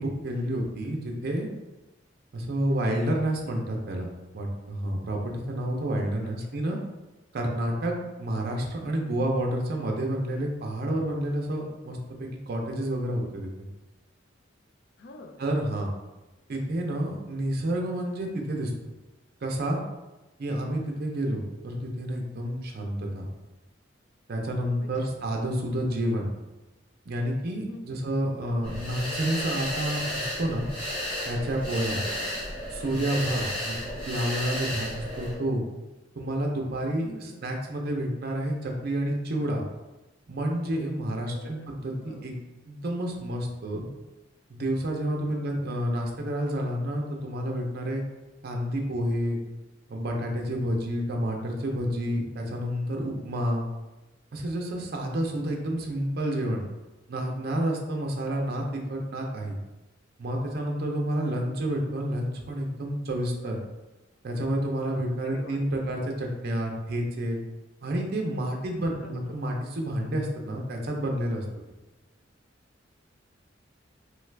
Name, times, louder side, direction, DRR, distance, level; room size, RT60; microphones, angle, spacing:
voice 1, 0.0-1.5 2.3-4.1 4.3-6.8 7.3-7.9 8.2-13.7 15.4-15.9 16.5-18.7 19.4-19.8 20.4-23.3 24.3-26.3 27.1-30.7 31.2-32.0 32.7-33.7 34.1-35.6 36.2-39.6 40.3-42.3 42.7-43.9 44.5-48.0 48.4-49.4 49.9-53.6 54.3-56.6 57.1-59.6 60.2-63.6 64.2-67.4 67.8-71.4, right 1 dB, 55° right, 1 dB, 0.5 m, -29 dB
voice 2, 7.7-8.1 15.0-15.4 24.8-25.2 27.7-28.1 31.9-32.4 33.8-34.1 37.0-37.5 41.3-42.3 45.3-45.8 53.4-53.5 65.2-65.6 69.0-69.4, left 2 dB, 60° left, 4 dB, 0.4 m, -47 dB
sound 1, 28.6-35.3, equal, 30° left, 1.2 m, -33 dB
3.1 x 2.4 x 3.2 m, 1.1 s
head